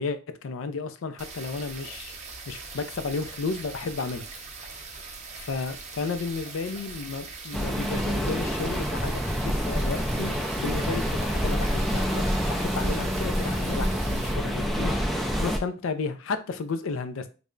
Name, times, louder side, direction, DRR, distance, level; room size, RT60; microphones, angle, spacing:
voice 1, 0.0-2.1 2.5-4.2 5.3-17.3, left 4 dB, 75° left, 0.4 m, -33 dB
sound 1, 1.2-14.3, right 4 dB, 35° right, 0.6 m, -41 dB
sound 2, 7.5-15.6, equal, ahead, 0.3 m, -27 dB
3.3 x 2.1 x 3.7 m
head